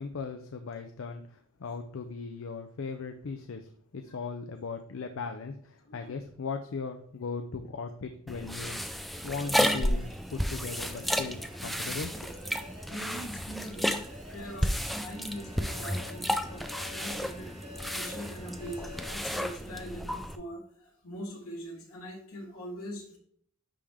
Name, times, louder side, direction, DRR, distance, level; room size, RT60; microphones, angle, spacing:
voice 1, 0.0-8.8 9.2-12.4, left 4 dB, 65° left, 6 dB, 0.5 m, -38 dB
sound 1, 8.3-20.3, equal, ahead, 0.3 m, -32 dB
Alarm, 9.1-19.1, left 2 dB, 35° right, 1.7 m, -50 dB
voice 2, 12.9-14.0 14.3-17.5 17.9-23.2, equal, 80° left, -1 dB, 2.1 m, -42 dB
10.0 x 3.4 x 3.6 m, 0.63 s
head